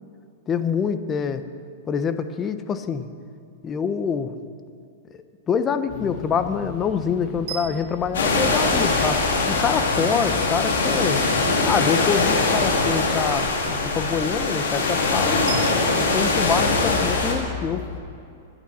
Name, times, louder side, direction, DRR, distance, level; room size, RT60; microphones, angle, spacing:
voice 1, 0.5-1.4 1.9-3.1 3.6-4.3 5.5-11.2 11.6-15.5 16.0-17.8, left 6 dB, 25° left, 10 dB, 0.8 m, -26 dB
sound 1, 5.9-18.0, left 6 dB, 50° left, 1.6 m, -37 dB
sound 2, 7.5-9.6 15.5-16.2, right 9 dB, 60° right, 3.2 m, -38 dB
sound 3, 8.1-17.3, left 3 dB, 80° left, 2.9 m, -22 dB
22.0 x 9.1 x 4.3 m, 2.4 s
hypercardioid pair, 130°, 0 cm